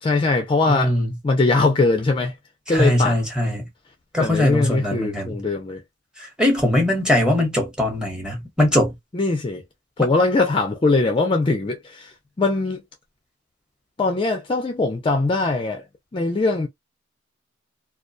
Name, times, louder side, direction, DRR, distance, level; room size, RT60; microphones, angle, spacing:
voice 1, 0.0-0.9 1.2-2.4 2.7-3.2 4.2-5.8 9.1-9.6 10.0-12.8 14.0-15.8 16.1-16.7, left 3 dB, 25° left, 0.4 m, -21 dB
voice 2, 0.7-1.1 2.7-3.7 4.1-5.4 6.2-8.9, left 1 dB, 5° right, 0.9 m, -21 dB
2.3 x 2.2 x 2.5 m
head